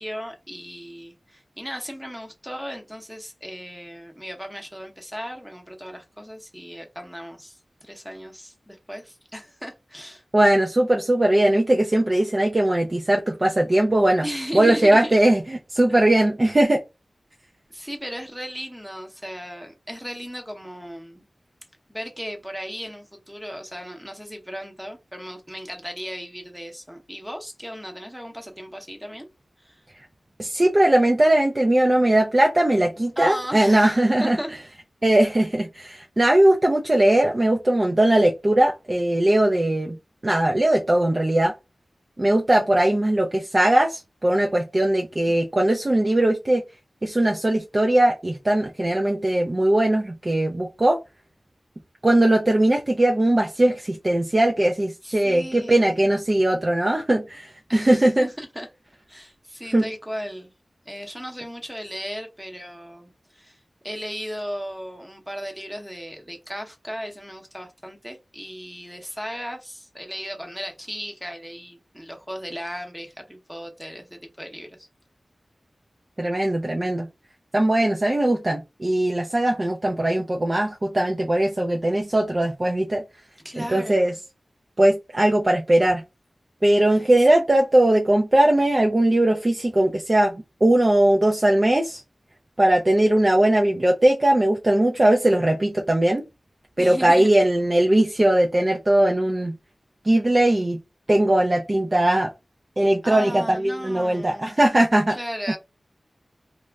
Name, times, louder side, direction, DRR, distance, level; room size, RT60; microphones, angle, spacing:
voice 1, 0.0-10.2 14.2-15.2 17.7-21.2 21.9-29.3 29.6-29.8 33.2-34.5 45.3-45.5 55.0-56.0 57.7-58.7 59.1-60.5 60.9-63.6 63.8-74.9 83.4-84.2 86.9-87.0 95.4-95.7 96.8-97.3 103.0-104.5 105.1-105.6, equal, 5° right, 0.8 m, -36 dB
voice 2, 10.3-14.2 14.5-16.8 30.4-34.4 35.0-40.0 40.2-41.5 42.2-46.6 47.0-51.0 52.0-58.3 59.7-59.8 76.2-77.1 77.5-83.0 83.6-84.1 84.8-86.0 86.6-92.0 92.6-96.2 96.8-99.6 100.0-100.8 101.1-102.3 102.8-105.2, right 1 dB, 35° right, 0.4 m, -19 dB
2.4 x 2.0 x 3.3 m
wide cardioid pair, 65°, 0 cm